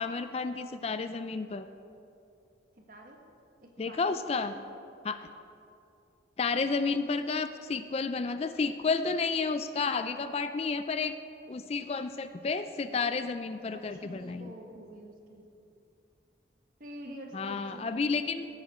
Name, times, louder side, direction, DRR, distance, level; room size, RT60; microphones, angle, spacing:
voice 1, 0.0-1.7 3.8-4.5 5.0-5.2 6.4-11.1 11.5-14.5 17.3-18.5, left 4 dB, 35° left, 11 dB, 0.3 m, -31 dB
voice 2, 2.8-3.2 3.6-4.7 9.3-9.4 9.7-10.2 13.7-15.4 16.8-18.2, right 1 dB, 50° right, 1 dB, 1.5 m, -48 dB
16.5 x 8.9 x 4.2 m, 2.7 s
head